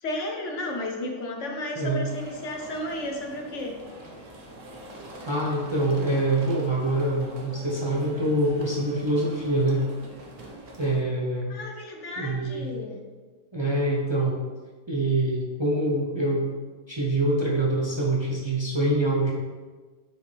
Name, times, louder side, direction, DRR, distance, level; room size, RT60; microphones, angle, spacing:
voice 1, 0.0-3.7 11.5-13.0, left 1 dB, 70° left, 2 dB, 1.2 m, -33 dB
sound 1, 2.0-11.0, right 1 dB, 75° right, 1.4 m, -44 dB
voice 2, 5.3-9.8 10.8-11.6 12.2-12.7 13.5-14.4 14.9-16.5 16.9-19.3, right 1 dB, 30° right, -3 dB, 0.6 m, -25 dB
6.9 x 4.4 x 3.3 m, 1.3 s
omnidirectional pair, 1.3 m